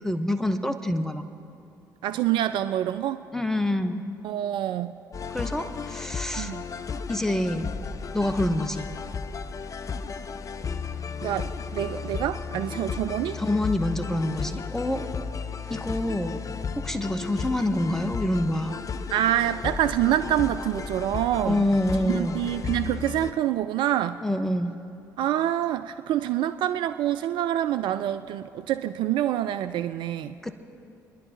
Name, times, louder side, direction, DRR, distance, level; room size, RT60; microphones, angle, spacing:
voice 1, 0.0-1.2 3.3-4.0 5.3-6.5 7.1-7.6 8.1-8.9 13.3-15.0 15.7-16.4 16.7-18.8 21.4-22.4 24.2-24.7 30.4-30.5, left 1 dB, 5° left, 8 dB, 0.9 m, -26 dB
voice 2, 2.0-3.2 4.2-4.9 6.4-6.7 11.2-13.4 19.1-21.7 22.0-24.2 25.2-30.5, right 12 dB, 50° right, 12 dB, 0.3 m, -26 dB
sound 1, 5.1-23.3, left 5 dB, 35° left, 0.5 m, -34 dB
30.0 x 10.5 x 2.9 m, 2.7 s
figure-of-eight pair, 50°, 10 cm